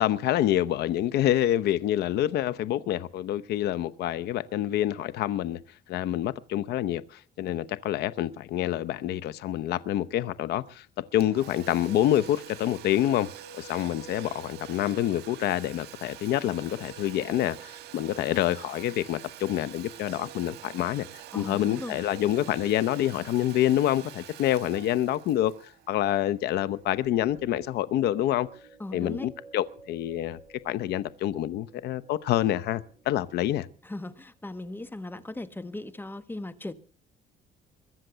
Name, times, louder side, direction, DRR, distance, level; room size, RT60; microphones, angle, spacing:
voice 1, 0.0-5.6 5.9-13.3 13.5-21.1 21.3-25.5 25.9-28.5 28.9-30.4 30.6-33.7, left 12 dB, 75° left, 0.9 m, -27 dB
Domestic sounds home sounds, 11.2-26.7, right 11 dB, 75° right, 1.5 m, -46 dB
voice 2, 21.3-22.0 28.8-29.3 33.8-36.7, left 2 dB, 10° left, 1.1 m, -38 dB
sound 1, 26.7-34.0, right 3 dB, 15° right, 8.0 m, -54 dB
22.5 x 7.6 x 6.8 m
cardioid pair, 110°, 17 cm